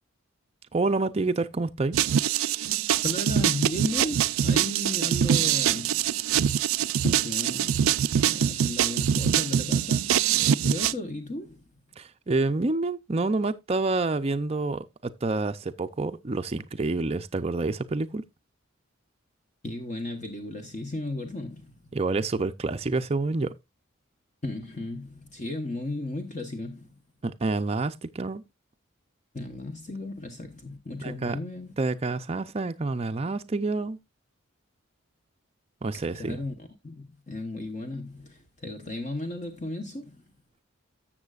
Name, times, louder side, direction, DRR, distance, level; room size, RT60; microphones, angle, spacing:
voice 1, 0.7-2.0 12.0-18.2 21.9-23.5 27.2-28.4 31.0-31.4 31.8-34.0 35.8-36.4, right 3 dB, 30° right, 0.5 m, -28 dB
sound 1, 1.9-10.9, right 9 dB, 85° right, 0.4 m, -24 dB
voice 2, 3.0-6.0 7.0-11.6 19.6-21.7 24.4-26.9 29.3-31.7 36.1-36.5 36.8-40.2, left 2 dB, 35° left, 1.0 m, -35 dB
13.0 x 7.5 x 2.4 m
head